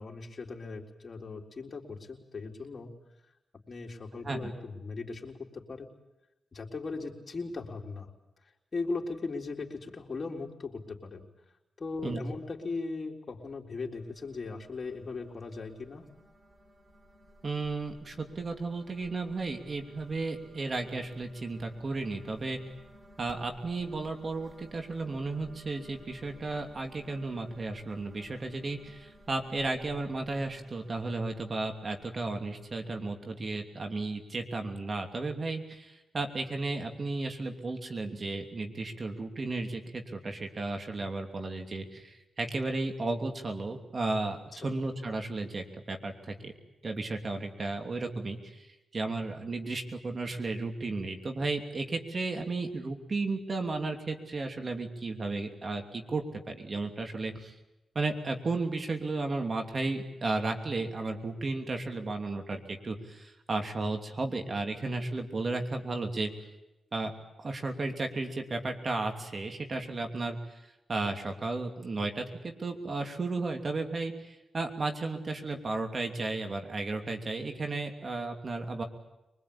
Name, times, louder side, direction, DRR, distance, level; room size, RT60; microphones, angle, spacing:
voice 1, 0.0-2.9 3.7-5.9 6.5-8.1 8.7-11.3 11.8-16.1 44.6-44.7, left 3 dB, 45° left, 0 dB, 3.9 m, -38 dB
sound 1, 14.0-33.2, equal, 30° right, 4.2 m, -56 dB
voice 2, 17.4-22.6 23.2-46.5 46.8-48.7 48.9-57.5 57.9-66.3 66.9-67.1 67.4-70.4 70.9-78.8, right 3 dB, 45° right, 5 dB, 3.0 m, -34 dB
23.5 x 21.0 x 8.7 m, 0.97 s
supercardioid pair, 45°, 0 cm